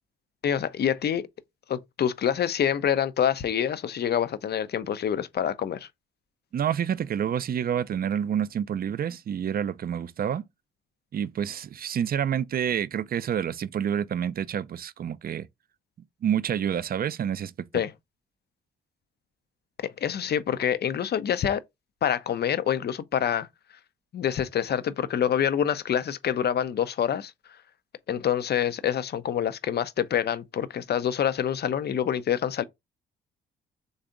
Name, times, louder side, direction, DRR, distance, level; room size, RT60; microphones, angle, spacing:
voice 1, 0.4-1.3 1.7-5.9 17.7-17.9 19.8-21.6 22.0-23.5 24.1-27.3 28.1-32.6, left 9 dB, 50° left, 0.6 m, -26 dB
voice 2, 6.5-10.4 11.1-15.5 16.2-17.5, right 9 dB, 45° right, 0.5 m, -28 dB
3.9 x 3.4 x 3.7 m
hypercardioid pair, 50°, 21 cm